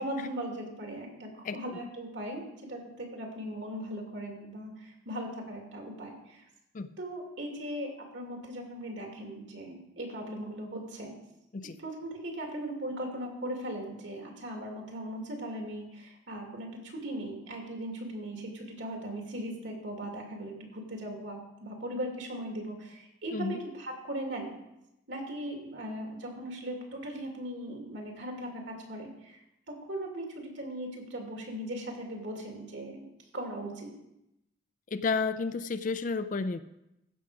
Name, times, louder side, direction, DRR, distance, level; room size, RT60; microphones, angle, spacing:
voice 1, 0.0-6.4 7.0-11.1 11.8-24.5 25.1-33.1 33.3-33.9, right 1 dB, 70° right, 1 dB, 2.5 m, -39 dB
voice 2, 1.4-1.8 6.7-6.9 11.5-11.8 23.3-23.6 34.9-36.6, left 4 dB, 40° left, 12 dB, 0.4 m, -31 dB
15.0 x 6.2 x 4.9 m, 0.88 s
head